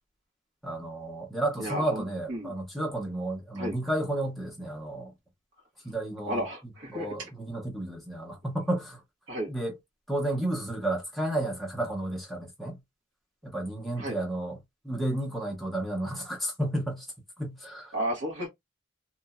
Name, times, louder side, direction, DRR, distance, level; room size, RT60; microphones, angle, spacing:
voice 1, 0.6-5.1 5.8-6.4 6.9-9.0 9.5-9.8 10.1-12.8 13.4-14.5 14.8-17.0 17.4-17.9, right 1 dB, ahead, 0.8 m, -32 dB
voice 2, 1.6-2.5 3.5-3.8 6.3-7.3 9.3-9.5 14.0-14.2 17.9-18.5, equal, 60° right, 1.3 m, -33 dB
2.8 x 2.6 x 2.2 m
head